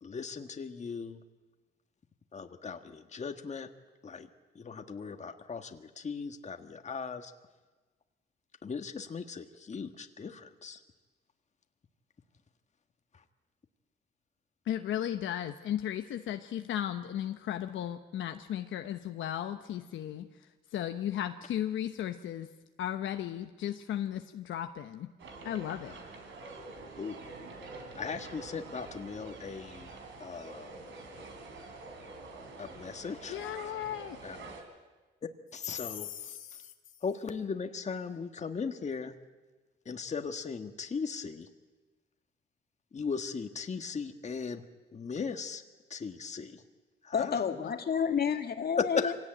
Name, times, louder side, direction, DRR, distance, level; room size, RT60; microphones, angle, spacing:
voice 1, 0.0-1.2 2.3-3.7 4.0-4.3 4.5-7.3 8.6-10.8 26.9-27.2 27.9-29.9 30.2-30.7 31.2-31.3 32.6-33.5 34.2-34.5 35.5-36.4 37.0-39.1 39.8-41.5 42.9-44.6 44.9-45.6 45.9-46.6 47.0-47.4 49.0-49.1, left 5 dB, 35° left, 6 dB, 1.6 m, -38 dB
voice 2, 14.7-20.3 20.7-22.5 22.8-25.1 25.4-26.0 33.3-34.2 36.0-36.7, left 11 dB, 75° left, 6 dB, 1.0 m, -35 dB
sound 1, 25.2-34.6, right 3 dB, 70° right, 4.4 m, -47 dB
voice 3, 47.1-49.1, left 7 dB, 50° left, 6 dB, 2.1 m, -30 dB
25.0 x 17.5 x 9.0 m, 1.2 s
cardioid pair, 90°, 20 cm